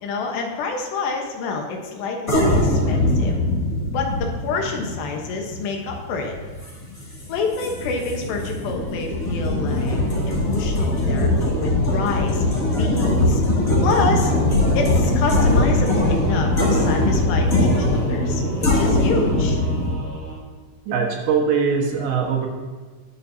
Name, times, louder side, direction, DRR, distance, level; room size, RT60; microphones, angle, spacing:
voice 1, 0.0-3.4 3.9-6.3 7.3-10.0 10.3-13.4 13.8-14.3 14.7-19.6, left 4 dB, 75° left, 2 dB, 3.2 m, -28 dB
sound 1, 2.3-19.9, left 1 dB, 30° left, 1.9 m, -21 dB
Singing / Musical instrument, 15.3-20.4, right 1 dB, 15° right, 2.0 m, -36 dB
voice 2, 20.9-22.5, right 6 dB, 80° right, 1 dB, 3.7 m, -21 dB
20.0 x 7.1 x 2.8 m, 1.4 s
omnidirectional pair, 5.1 m